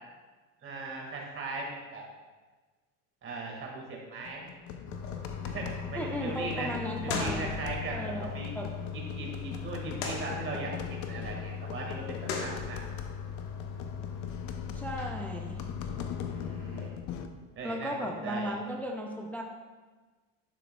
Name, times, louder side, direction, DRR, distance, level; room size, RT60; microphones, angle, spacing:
voice 1, 0.6-2.0 3.2-4.5 5.4-6.7 7.0-8.5 9.1-12.8 16.2-16.9 17.6-17.9 18.2-18.5, right 3 dB, 30° right, -1 dB, 1.9 m, -38 dB
sound 1, 4.2-17.3, left 7 dB, 50° left, 0.6 m, -41 dB
sound 2, 4.9-16.9, left 5 dB, 65° left, 1.5 m, -38 dB
voice 2, 5.9-7.5 7.9-8.7 14.7-15.6 17.6-19.4, equal, 5° left, 0 dB, 0.4 m, -36 dB
10.5 x 6.8 x 2.3 m, 1.3 s
supercardioid pair, 130°, 39 cm